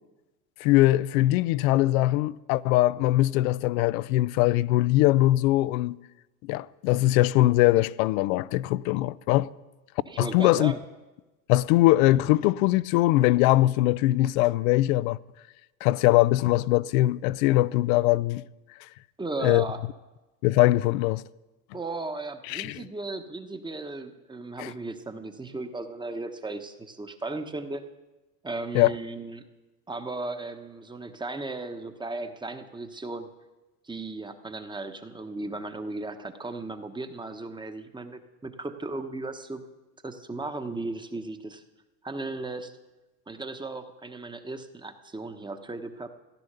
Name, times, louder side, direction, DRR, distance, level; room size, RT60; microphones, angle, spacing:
voice 1, 0.6-6.0 6.5-9.5 10.2-10.7 11.5-15.2 15.8-18.4 19.4-19.6 20.4-21.2 22.5-22.8 24.6-24.7 28.7-28.9, left 17 dB, 70° left, 0.6 m, -22 dB
voice 2, 10.1-10.8 19.2-19.8 21.7-27.8 28.4-29.4 29.9-33.3 33.8-39.6 40.0-41.6 42.0-42.7 43.3-46.1, right 2 dB, 10° right, 1.1 m, -36 dB
15.0 x 10.5 x 6.7 m
supercardioid pair, 105°, 43 cm